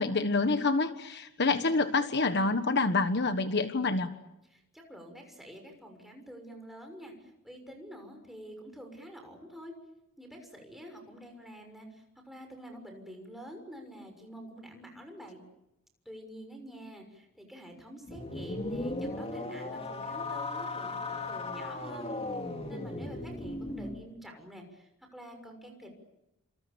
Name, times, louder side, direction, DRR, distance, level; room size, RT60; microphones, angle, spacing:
voice 1, 0.0-4.1, left 3 dB, 55° left, 9 dB, 1.4 m, -27 dB
voice 2, 4.5-9.7 10.2-15.4 16.0-22.1 22.7-25.9, equal, ahead, 3 dB, 6.4 m, -47 dB
sound 1, 18.1-24.0, left 2 dB, 30° left, 2.7 m, -36 dB
29.5 x 26.5 x 7.0 m, 0.92 s
head